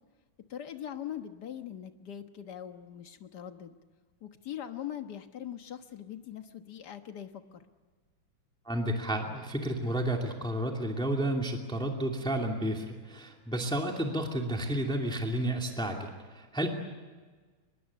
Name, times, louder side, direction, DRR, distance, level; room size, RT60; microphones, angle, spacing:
voice 1, 0.5-3.8 4.2-7.6, left 10 dB, 55° left, 7 dB, 1.8 m, -41 dB
voice 2, 8.7-16.7, right 1 dB, ahead, 1 dB, 2.3 m, -31 dB
24.0 x 21.5 x 8.2 m, 1.4 s
omnidirectional pair, 2.2 m